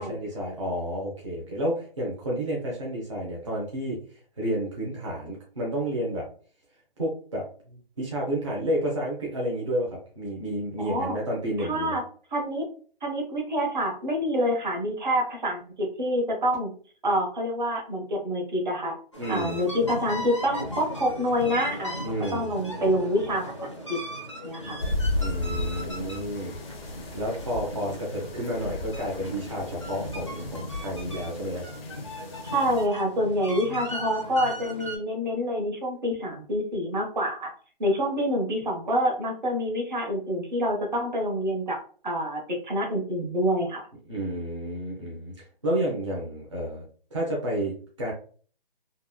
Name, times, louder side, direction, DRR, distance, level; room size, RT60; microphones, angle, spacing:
voice 1, 0.0-4.0 4.4-6.3 7.0-12.0 19.2-19.6 22.0-22.5 25.2-26.5 27.1-31.7 44.1-45.3 45.6-46.8 47.1-48.1, equal, 35° right, -4 dB, 0.6 m, -30 dB
voice 2, 10.8-11.2 11.6-12.0 12.3-12.6 13.0-16.7 17.0-19.0 19.3-24.0 24.4-24.8 32.5-37.5 37.8-41.8 42.0-43.8, equal, 50° right, 0 dB, 1.0 m, -27 dB
sound 1, 19.1-35.0, equal, 30° left, 0.4 m, -37 dB
sound 2, 24.8-32.9, left 2 dB, 90° left, 0.6 m, -34 dB
2.9 x 2.2 x 2.2 m, 0.42 s
hypercardioid pair, 175°, 29 cm